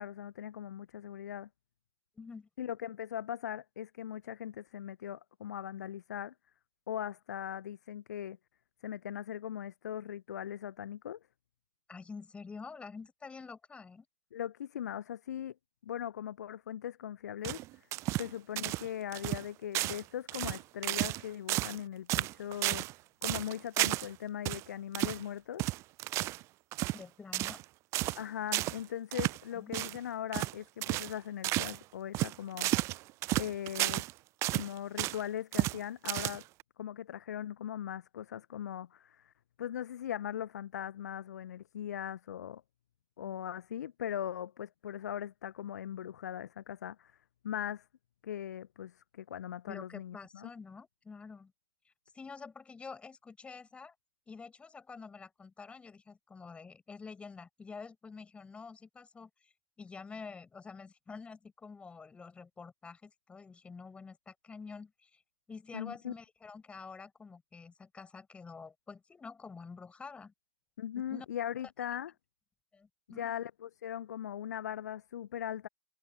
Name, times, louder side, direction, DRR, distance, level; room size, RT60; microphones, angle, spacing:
voice 1, 0.0-1.5 2.6-6.3 6.9-8.4 8.8-11.2 14.3-15.5 15.8-17.6 18.2-22.9 23.2-25.6 28.1-32.7 33.4-34.0 34.5-36.4 36.8-42.6 43.2-47.1 47.4-47.9 48.2-50.5 65.7-66.1 70.8-72.1 73.1-75.7, left 10 dB, 60° left, 0.7 m, -40 dB
voice 2, 2.2-2.5 11.9-14.1 26.9-27.6 29.5-29.9 49.7-51.5 52.1-53.9 54.3-59.3 59.8-65.2 65.5-70.3 71.0-71.3 72.7-73.4, left 5 dB, 10° left, 7.0 m, -48 dB
sound 1, 17.4-18.3 18.6-18.9 19.1-19.4 19.7-20.0 20.3-21.2 21.5-21.8 22.1-22.9 23.2-24.1 24.4-24.6 24.9-25.2 25.6-26.4 26.7-27.0 27.3-27.6 27.9-28.2 28.5-28.8 29.1-29.4 29.7-30.0 30.3-30.5 30.8-31.1 31.4-31.8 32.1-34.1 34.4-35.2 35.5-35.8 36.0-36.6, right 19 dB, 30° right, 0.6 m, -32 dB
figure-of-eight pair, 110°, 10 cm